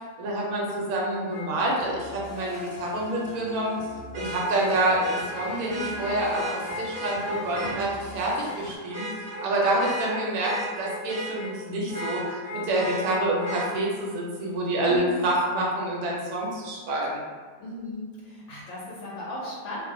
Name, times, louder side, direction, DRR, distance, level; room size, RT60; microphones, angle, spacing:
voice 1, 0.2-3.9 4.1-9.1 9.4-17.2, right 1 dB, 85° right, -3 dB, 1.1 m, -27 dB
Vehicle horn car horn honking, 1.3-1.4 4.1-7.8 8.3-8.5 8.9-11.5 11.9-13.7 15.5-15.6, equal, 45° right, 0.8 m, -35 dB
sound 1, 1.7-8.8, left 3 dB, 45° left, 0.4 m, -41 dB
voice 2, 14.9-15.2 17.6-19.8, left 2 dB, 65° left, -6 dB, 0.8 m, -37 dB
2.5 x 2.1 x 2.6 m, 1.5 s
omnidirectional pair, 1.5 m